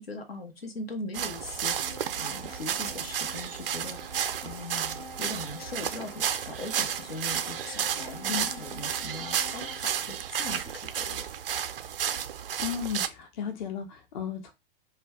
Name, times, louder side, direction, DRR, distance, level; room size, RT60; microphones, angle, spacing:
voice 1, 0.0-1.8 2.2-11.2, left 2 dB, 80° left, 0.9 m, -40 dB
sound 1, 1.1-13.1, right 9 dB, 65° right, 0.5 m, -32 dB
sound 2, 1.7-10.3, left 4 dB, 10° left, 0.4 m, -48 dB
voice 2, 8.3-8.7 12.6-14.5, left 8 dB, 50° left, 0.7 m, -35 dB
2.4 x 2.2 x 3.5 m
figure-of-eight pair, 100°, 30 cm